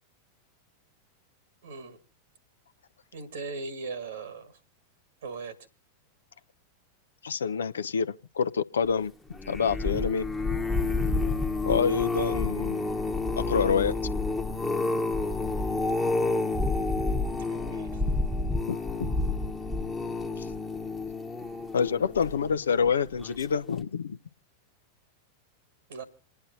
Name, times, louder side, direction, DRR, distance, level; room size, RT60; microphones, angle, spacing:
voice 1, 1.6-2.0 3.1-4.6 5.2-5.6 16.0-16.3 17.4-18.1 25.9-26.0, right 4 dB, 65° right, 1.9 m, -39 dB
voice 2, 7.2-9.1 9.5-10.3 11.7-12.9 13.4-13.9 18.7-19.1 21.7-24.2, left 6 dB, 70° left, 0.6 m, -27 dB
sound 1, 9.3-22.7 23.2-23.5 23.8-23.9, left 3 dB, 5° left, 1.1 m, -29 dB
28.0 x 9.9 x 2.7 m
figure-of-eight pair, 90°, 0 cm